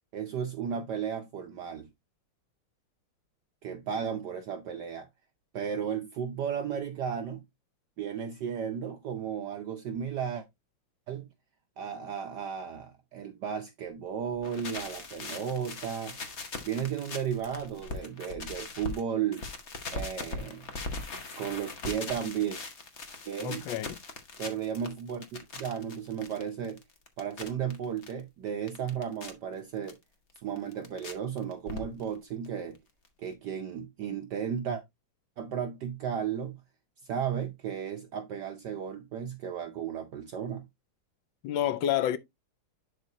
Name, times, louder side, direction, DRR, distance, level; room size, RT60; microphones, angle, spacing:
voice 1, 0.1-1.9 3.6-5.1 5.5-7.4 8.0-10.4 11.1-11.3 11.8-16.2 16.6-19.4 19.9-20.7 21.4-22.6 23.3-23.7 24.4-26.8 27.2-30.0 30.4-32.8 33.2-34.8 35.4-36.6 37.0-40.7, right 8 dB, 65° right, 1.1 m, -34 dB
sound 1, 14.3-19.0 19.3-28.1 28.5-29.3 29.9-30.0 30.4-31.1 31.4-32.2 32.4-32.5 32.7-32.8 33.0-33.1, left 3 dB, 45° left, 1.0 m, -40 dB
voice 2, 23.4-24.0 41.4-42.2, left 11 dB, 75° left, 1.1 m, -29 dB
11.0 x 4.2 x 2.7 m
omnidirectional pair, 2.4 m